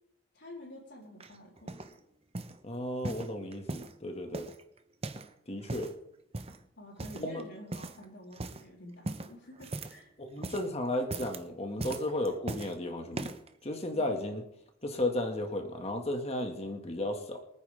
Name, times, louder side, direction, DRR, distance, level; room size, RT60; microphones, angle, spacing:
voice 1, 0.3-2.0 6.8-10.1, left 1 dB, 80° left, -8 dB, 4.0 m, -49 dB
sound 1, 1.2-1.9 2.3-2.6 3.0-4.0 4.3-5.3 5.6-6.0 6.3-6.6 7.0-7.4 7.7-8.0 8.3-8.6 9.0-10.1 10.3-10.7 11.0-11.4 11.8-12.7 13.1-13.5 14.2-14.3, right 2 dB, 35° right, 0.9 m, -39 dB
voice 2, 2.6-4.5 5.5-5.9 7.2-7.4 10.2-13.3 13.6-14.4 14.8-17.4, left 1 dB, 35° left, 4 dB, 2.0 m, -34 dB
24.0 x 9.5 x 3.6 m, 0.79 s
head